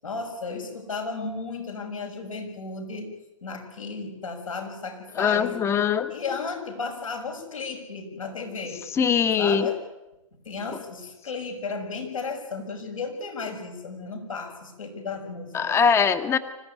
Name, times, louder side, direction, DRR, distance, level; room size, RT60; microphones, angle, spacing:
voice 1, 0.0-3.1 3.4-5.5 6.1-8.8 9.4-9.8 10.4-15.8, left 4 dB, 75° left, 3 dB, 6.3 m, -34 dB
voice 2, 5.1-6.1 8.9-9.7 15.5-16.4, left 7 dB, 15° left, 11 dB, 1.2 m, -22 dB
25.5 x 16.0 x 9.6 m, 0.98 s
figure-of-eight pair, 120°, 17 cm